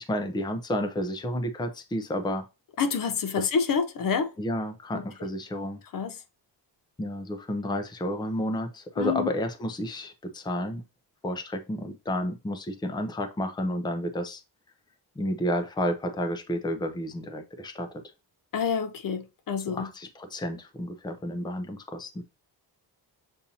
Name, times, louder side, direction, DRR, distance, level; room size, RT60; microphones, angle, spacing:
voice 1, 0.0-2.5 3.4-3.5 4.4-5.8 7.0-10.8 11.2-14.4 15.2-17.9 19.7-22.2, equal, 10° left, 0.5 m, -31 dB
voice 2, 2.8-4.3 4.9-5.0 5.9-6.2 9.0-9.3 18.5-19.9, left 6 dB, 55° left, 0.6 m, -27 dB
7.0 x 2.6 x 2.7 m
wide cardioid pair, 140°, 41 cm